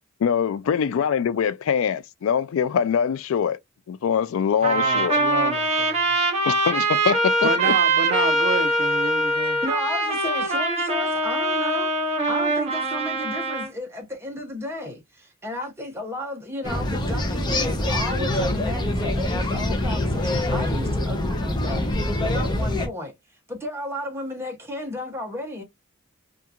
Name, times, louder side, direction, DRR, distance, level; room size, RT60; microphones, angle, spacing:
voice 1, 0.2-3.6 3.9-5.2 6.4-7.7, left 7 dB, 75° left, 0.3 m, -23 dB
Trumpet, 4.6-13.7, right 2 dB, 30° right, 1.0 m, -23 dB
voice 2, 4.6-6.1 7.4-9.6, right 4 dB, 50° right, 0.5 m, -29 dB
voice 3, 9.4-21.9 22.2-23.1 23.5-25.6, left 1 dB, 10° right, 0.8 m, -33 dB
sound 1, 16.6-22.9, left 1 dB, 20° left, 0.5 m, -24 dB
2.8 x 2.4 x 2.3 m
head